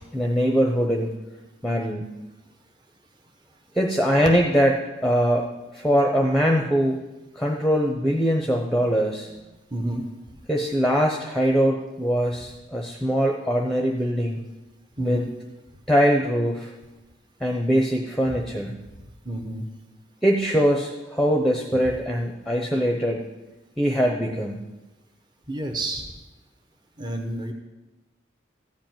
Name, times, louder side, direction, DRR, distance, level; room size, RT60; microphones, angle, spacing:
voice 1, 0.1-1.1 1.6-2.1 3.7-4.7 5.0-5.5 5.7-7.0 7.4-9.3 10.5-14.4 15.0-15.2 15.9-16.7 17.4-18.7 20.2-23.2 23.8-24.6, equal, ahead, 1 dB, 0.8 m, -22 dB
voice 2, 9.7-10.0 15.0-15.3 18.3-18.4 19.2-19.7 25.5-26.1 27.0-27.5, right 1 dB, 25° right, 2 dB, 1.0 m, -30 dB
14.0 x 5.2 x 9.1 m, 1.1 s
head